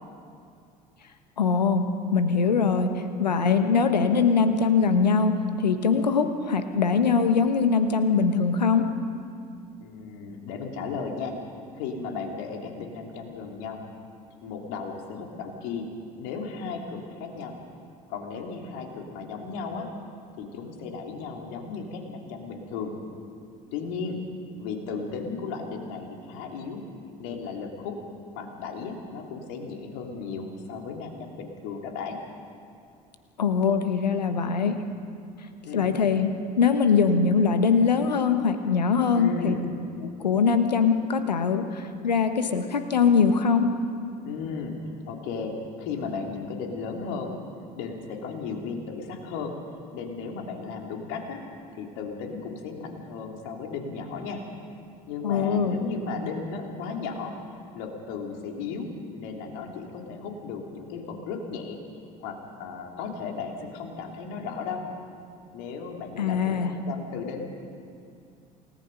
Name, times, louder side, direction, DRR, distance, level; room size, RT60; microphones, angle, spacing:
voice 1, 1.4-1.8 2.1-8.8 33.4-34.8 35.7-36.3 36.6-39.6 40.2-43.7 55.2-55.8 66.2-66.7, left 5 dB, 85° left, 8 dB, 1.2 m, -22 dB
voice 2, 9.8-11.3 11.7-13.8 14.4-15.9 16.2-17.6 18.1-19.9 20.4-22.9 23.7-24.2 24.6-26.8 27.2-28.0 28.3-32.2 35.6-35.9 39.1-39.6 44.2-47.4 47.7-49.6 49.9-51.4 51.7-54.4 55.1-58.9 59.1-61.8 62.2-64.8 65.5-67.5, left 5 dB, 65° left, 2 dB, 3.2 m, -35 dB
28.5 x 18.0 x 5.4 m, 2.4 s
figure-of-eight pair, 65°, 21 cm